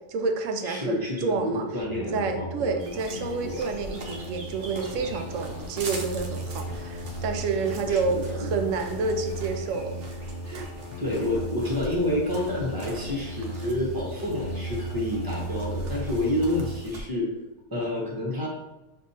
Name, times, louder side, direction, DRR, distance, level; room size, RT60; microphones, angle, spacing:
voice 1, 0.1-1.7 1.9-10.0 10.5-10.7, right 4 dB, 80° right, 5 dB, 1.0 m, -29 dB
voice 2, 0.6-2.7 3.1-3.6 7.9-8.6 10.4-10.5 11.0-17.3 17.7-18.5, left 1 dB, 20° right, -3 dB, 1.0 m, -29 dB
sound 1, 1.8-16.7, right 1 dB, 75° left, 1.0 m, -36 dB
sound 2, 2.8-17.0, right 2 dB, 60° right, 0.8 m, -42 dB
sound 3, 4.6-14.8, equal, 30° left, 0.7 m, -51 dB
6.5 x 2.7 x 2.8 m, 1.0 s
omnidirectional pair, 1.3 m